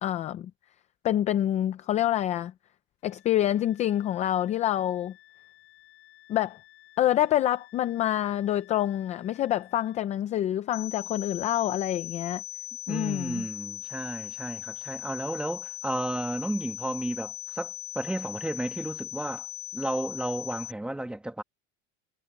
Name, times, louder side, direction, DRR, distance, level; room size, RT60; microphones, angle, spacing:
voice 1, 0.0-0.5 1.0-2.5 3.0-5.1 6.3-6.6 7.0-12.4 12.9-13.4, left 12 dB, 20° left, 0.4 m, -27 dB
Wind instrument woodwind instrument, 3.0-10.1, left 15 dB, 85° left, 6.3 m, -56 dB
sound 1, 10.7-20.7, left 22 dB, 45° left, 4.2 m, -39 dB
voice 2, 12.9-19.5 19.7-21.4, right 1 dB, 5° right, 1.1 m, -33 dB
cardioid pair, 170°, 33 cm